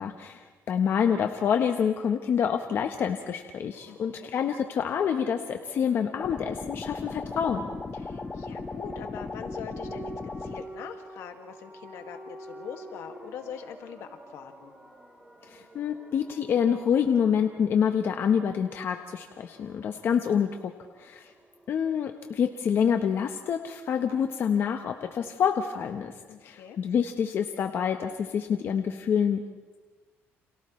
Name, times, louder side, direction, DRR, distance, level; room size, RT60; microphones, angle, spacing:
voice 1, 0.0-7.7 15.5-20.5 21.0-21.3 21.7-26.1 26.4-29.4, left 7 dB, 55° left, 5 dB, 1.0 m, -27 dB
sound 1, 3.7-23.2, right 2 dB, 15° right, 3.7 m, -49 dB
voice 2, 3.9-4.3 7.9-14.7 26.3-26.8, left 8 dB, 80° left, 5 dB, 2.0 m, -43 dB
sound 2, 6.2-10.7, left 4 dB, 20° left, 1.0 m, -37 dB
29.5 x 27.5 x 3.2 m, 1.3 s
cardioid pair, 130°, 5 cm